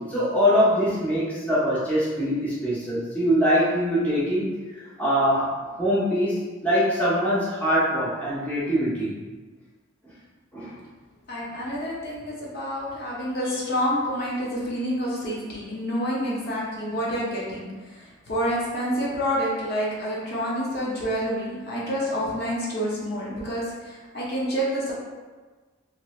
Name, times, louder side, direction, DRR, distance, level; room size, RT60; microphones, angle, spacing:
voice 1, 0.0-4.5 5.0-5.5 5.8-6.4 6.6-9.1 10.5-10.7, equal, 5° left, -10 dB, 0.7 m, -23 dB
voice 2, 11.3-24.9, equal, 50° left, -6 dB, 0.7 m, -28 dB
2.8 x 2.6 x 3.0 m, 1.3 s
head